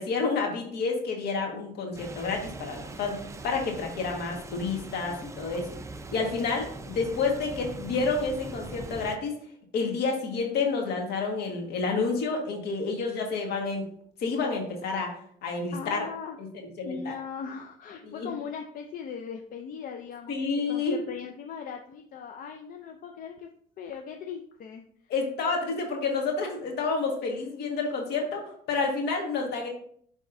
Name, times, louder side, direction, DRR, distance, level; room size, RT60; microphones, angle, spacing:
voice 1, 0.0-5.7 6.1-9.3 9.7-13.9 14.2-15.1 15.4-16.1 16.4-16.5 16.8-17.1 18.1-18.3 20.3-21.0 25.1-29.7, left 4 dB, 75° left, 2 dB, 1.6 m, -29 dB
sound 1, 1.9-9.2, right 3 dB, 15° right, 0.4 m, -41 dB
voice 2, 15.7-16.4 16.8-20.4 20.7-23.5 23.8-24.9, left 6 dB, 55° left, 4 dB, 0.6 m, -39 dB
10.0 x 3.5 x 2.6 m, 0.63 s
cardioid pair, 110°, 17 cm